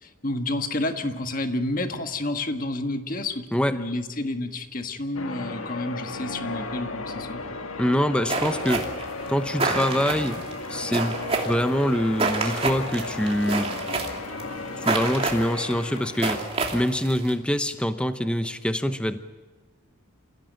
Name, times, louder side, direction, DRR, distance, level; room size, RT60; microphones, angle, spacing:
voice 1, 0.0-3.5 3.7-7.4, left 2 dB, 40° left, 6 dB, 1.6 m, -30 dB
Church bell, 5.1-17.4, left 3 dB, 85° left, 1.8 m, -35 dB
voice 2, 7.8-8.9 9.3-10.4 10.7-13.8 14.8-19.2, equal, 5° left, 9 dB, 0.8 m, -25 dB
sound 1, 8.3-17.3, right 3 dB, 30° right, 2.8 m, -28 dB
28.0 x 16.5 x 9.1 m, 1.3 s
head